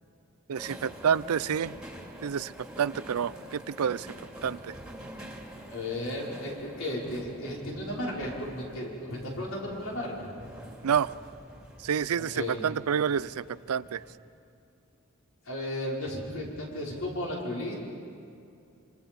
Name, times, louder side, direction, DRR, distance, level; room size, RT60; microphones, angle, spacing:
sound 1, 0.5-14.2, right 1 dB, 5° right, 2.4 m, -46 dB
voice 1, 0.5-1.8 2.2-4.1 4.4-4.7 10.8-11.1 11.8-14.0, right 7 dB, 90° right, 19 dB, 0.4 m, -28 dB
voice 2, 5.7-10.3 12.3-12.6 15.5-17.8, left 1 dB, 70° left, -3 dB, 5.3 m, -34 dB
26.5 x 26.0 x 5.4 m, 2.6 s
head